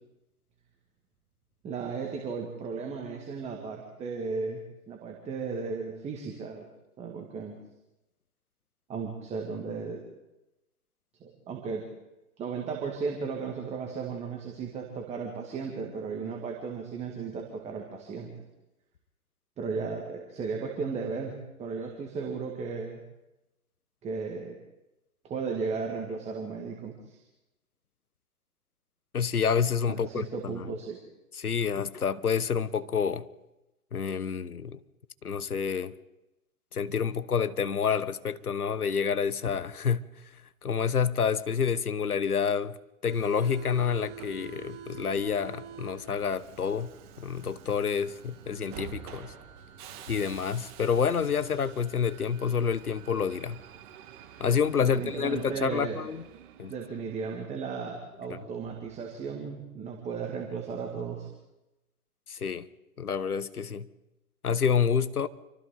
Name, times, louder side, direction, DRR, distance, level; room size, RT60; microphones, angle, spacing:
voice 1, 1.6-4.6 4.9-6.7 7.0-7.6 8.9-10.0 11.2-11.8 12.4-18.3 19.6-21.3 21.6-23.0 24.0-24.6 25.2-27.2 29.9-31.0 54.8-56.0 56.7-61.3, right 5 dB, 15° right, 2.0 m, -35 dB
voice 2, 29.1-30.7 31.3-33.2 33.9-34.8 35.2-35.9 36.7-40.1 40.6-42.8 43.0-46.9 47.2-49.3 50.1-53.6 54.4-56.2 56.6-56.7 62.3-62.7 63.0-63.9 64.4-65.3, left 6 dB, 75° left, 1.2 m, -28 dB
Subway metro underground, 43.1-57.4, right 8 dB, 35° right, 1.8 m, -47 dB
27.5 x 24.5 x 4.0 m
figure-of-eight pair, 125°, 45 cm